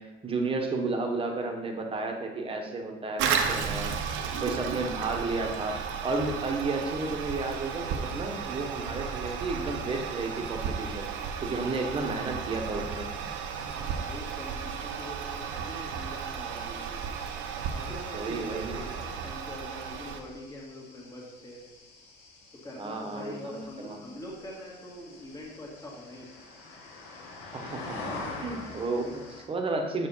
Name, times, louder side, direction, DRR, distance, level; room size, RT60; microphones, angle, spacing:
voice 1, 0.0-3.9 4.4-11.1 11.4-13.1 18.1-18.8 22.8-24.1 27.5-28.0 28.4-30.1, right 3 dB, 25° right, 3 dB, 1.2 m, -32 dB
Toilet flush, 3.2-20.2, right 6 dB, 75° right, 0.8 m, -34 dB
sound 1, 13.2-29.4, left 3 dB, 75° left, 2.1 m, -46 dB
voice 2, 13.7-17.0 17.7-21.6 22.6-26.4 28.1-28.5, left 1 dB, 15° left, -5 dB, 2.0 m, -44 dB
7.2 x 4.8 x 5.6 m, 1.1 s
cardioid pair, 125°, 20 cm